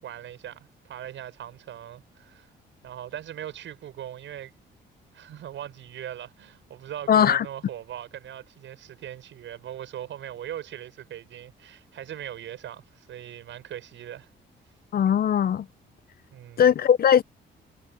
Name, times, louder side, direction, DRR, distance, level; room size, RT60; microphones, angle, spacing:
voice 1, 0.0-2.5 2.8-4.5 5.1-14.3 16.3-16.6, right 11 dB, 75° right, 7.1 m, -40 dB
voice 2, 7.1-7.4 14.9-15.7 16.6-17.2, left 8 dB, 50° left, 0.6 m, -19 dB
cardioid pair, 90°, 20 cm